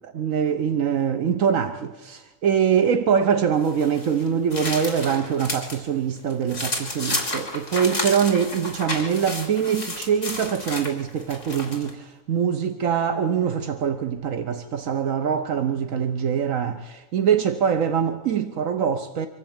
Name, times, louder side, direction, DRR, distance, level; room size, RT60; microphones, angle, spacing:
voice 1, 0.0-19.3, right 7 dB, 75° right, 1.3 m, -23 dB
sound 1, 3.6-5.8 6.2-11.9, left 2 dB, 60° left, 3.8 m, -31 dB
24.5 x 15.0 x 8.8 m
omnidirectional pair, 1.4 m